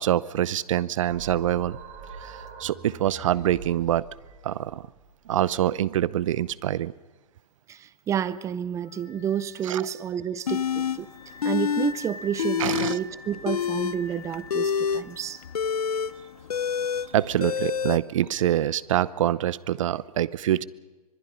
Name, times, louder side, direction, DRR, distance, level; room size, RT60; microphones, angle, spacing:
voice 1, 0.0-1.8 2.2-4.1 4.4-4.8 5.3-6.9 9.6-9.8 12.6-12.9 17.1-20.7, right 12 dB, 55° right, 20 dB, 0.8 m, -25 dB
sound 1, 1.1-6.4, right 5 dB, 35° right, 4.3 m, -44 dB
voice 2, 7.7-11.1 11.4-15.4, right 9 dB, 15° right, 17 dB, 0.7 m, -30 dB
Wind instrument woodwind instrument, 8.8-16.3, left 2 dB, 20° left, 3.2 m, -46 dB
sound 2, 10.5-11.0 11.4-11.9 12.2-13.0 13.4-18.0, left 7 dB, 75° left, 1.0 m, -27 dB
25.5 x 21.0 x 5.6 m, 1.3 s
hypercardioid pair, 125°, 19 cm